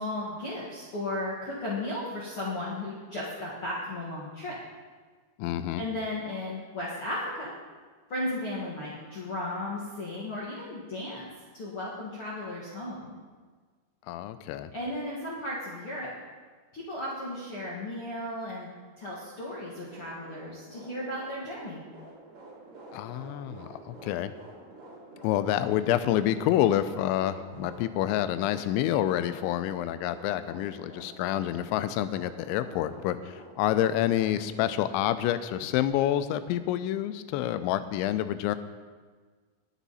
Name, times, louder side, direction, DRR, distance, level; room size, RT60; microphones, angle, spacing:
voice 1, 0.0-4.6 5.8-7.5 8.1-11.2 11.5-13.2 14.7-16.1 16.7-18.7 19.0-21.8, left 1 dB, 50° left, -7 dB, 1.6 m, -35 dB
voice 2, 5.4-5.8 14.1-14.7 22.9-24.3 25.2-38.6, left 12 dB, 90° left, 12 dB, 3.0 m, -28 dB
sound 1, 19.7-35.9, right 2 dB, 40° right, 3.9 m, -48 dB
20.0 x 7.2 x 4.2 m, 1.5 s
omnidirectional pair, 5.2 m